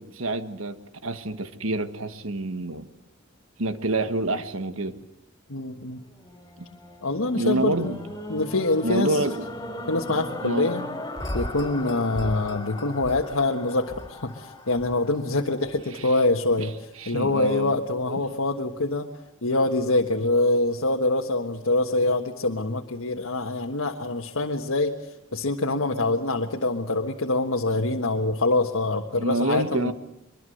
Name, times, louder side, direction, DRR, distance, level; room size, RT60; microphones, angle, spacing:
voice 1, 0.0-2.9 3.6-5.0 7.4-8.0 8.8-9.5 10.4-10.7 15.9-16.1 16.6-16.7 17.0-17.8 18.1-18.2 29.2-29.9, right 2 dB, 80° right, 11 dB, 1.5 m, -27 dB
voice 2, 5.5-6.0 7.0-8.0 8.3-9.2 9.9-10.8 11.3-16.7 17.1-19.1 19.4-29.9, left 2 dB, 85° left, 1 dB, 1.5 m, -25 dB
sound 1, 6.1-16.4 17.0-17.1, left 1 dB, 15° left, 3.5 m, -37 dB
23.5 x 23.0 x 7.9 m, 0.81 s
head